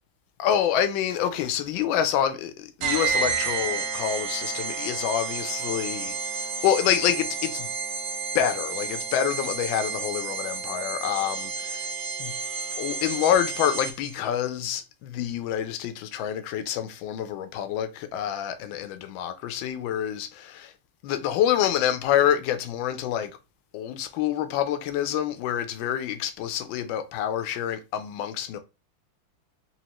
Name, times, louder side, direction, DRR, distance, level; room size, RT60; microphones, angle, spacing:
voice 1, 0.4-6.2 6.6-7.7 8.3-11.9 12.2-12.4 12.8-20.7 21.0-23.3 23.7-28.6, left 10 dB, 75° left, 1.3 m, -27 dB
sound 1, 2.8-14.2, right 5 dB, 85° right, 1.7 m, -31 dB
4.3 x 2.9 x 2.9 m
omnidirectional pair, 2.4 m